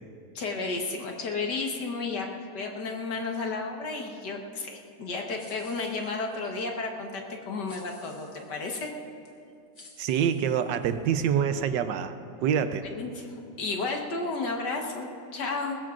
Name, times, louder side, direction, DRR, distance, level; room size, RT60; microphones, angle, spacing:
voice 1, 0.4-8.9 12.8-15.8, left 3 dB, 75° left, 1 dB, 2.0 m, -33 dB
sound 1, 5.4-6.5 7.7-8.6 9.2-9.4 9.7-11.1, left 2 dB, 40° left, 1.9 m, -53 dB
voice 2, 10.0-12.9, right 8 dB, 85° right, 10 dB, 1.4 m, -26 dB
21.5 x 19.5 x 2.5 m, 2.5 s
omnidirectional pair, 1.8 m